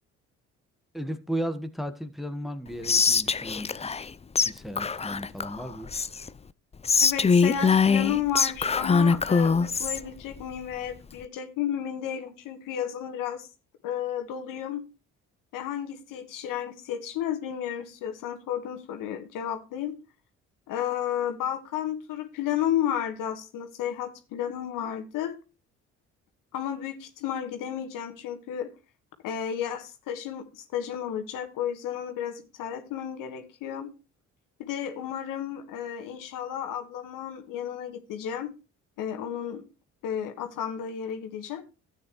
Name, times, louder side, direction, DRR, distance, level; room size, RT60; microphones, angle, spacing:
voice 1, 0.9-3.9 4.4-5.9, equal, ahead, 1.4 m, -35 dB
Whispering, 2.9-4.1 4.4-4.5 4.8-6.3 6.8-10.0, left 5 dB, 20° left, 0.5 m, -23 dB
voice 2, 7.0-13.5 13.8-14.8 15.5-19.9 20.7-25.3 26.5-28.7 29.2-33.9 34.6-38.5 39.0-39.6 40.0-41.6, left 9 dB, 75° left, 1.6 m, -32 dB
13.0 x 8.8 x 3.1 m
hypercardioid pair, 55°, 33 cm